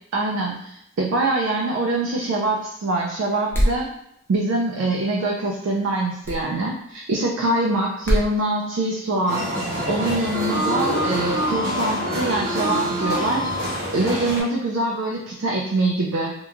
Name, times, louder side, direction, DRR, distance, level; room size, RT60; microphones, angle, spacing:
voice 1, 0.1-3.9 4.3-9.5 9.9-13.5 13.9-16.3, right 2 dB, 65° right, -1 dB, 0.3 m, -24 dB
sound 1, 3.5-3.9 6.2-6.4 8.0-8.3, equal, 10° left, 0.5 m, -21 dB
sound 2, 9.3-14.4, equal, 50° right, 0.8 m, -25 dB
2.9 x 2.2 x 2.4 m, 0.77 s
head